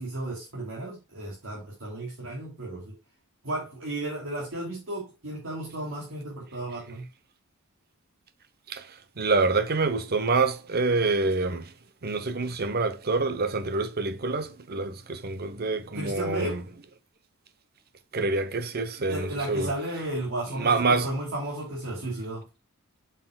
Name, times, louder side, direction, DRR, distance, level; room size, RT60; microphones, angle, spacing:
voice 1, 0.0-2.9 3.4-7.1 15.9-16.6 19.1-22.4, right 1 dB, 60° right, 2.9 m, -34 dB
voice 2, 8.7-11.7 12.0-16.6 18.1-19.7 20.5-21.1, right 3 dB, 45° right, 0.8 m, -26 dB
7.8 x 6.7 x 2.3 m
head